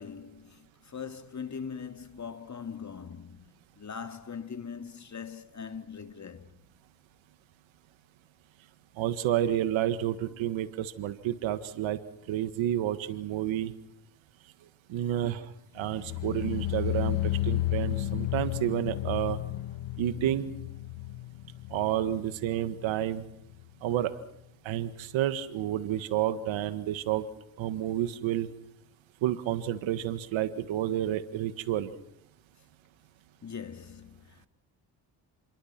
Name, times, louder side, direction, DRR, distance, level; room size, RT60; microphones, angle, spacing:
voice 1, 0.0-6.5 33.4-34.5, left 6 dB, 40° left, 2.2 m, -41 dB
voice 2, 9.0-12.0 12.3-13.7 14.9-19.4 20.0-20.5 21.7-23.2 23.8-24.1 24.6-27.3 27.6-28.5 29.2-31.9, right 12 dB, 80° right, 1.7 m, -30 dB
sound 1, 15.8-22.9 23.2-23.6 24.0-24.1, left 15 dB, 75° left, 1.5 m, -33 dB
29.5 x 23.0 x 6.0 m
supercardioid pair, 65°, 46 cm